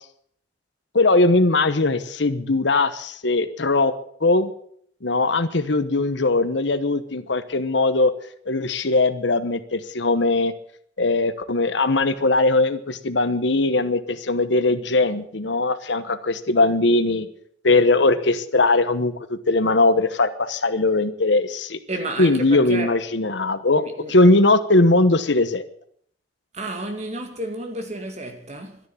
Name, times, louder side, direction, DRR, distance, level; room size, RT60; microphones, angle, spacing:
voice 1, 0.9-3.9 4.2-4.5 5.0-8.1 8.5-10.5 11.0-17.3 17.6-21.8 22.2-23.8 24.1-25.6, left 2 dB, 70° left, 1.1 m, -20 dB
voice 2, 21.9-22.9 23.8-24.3 26.5-28.8, right 1 dB, 35° right, 2.2 m, -31 dB
12.5 x 10.5 x 9.3 m
head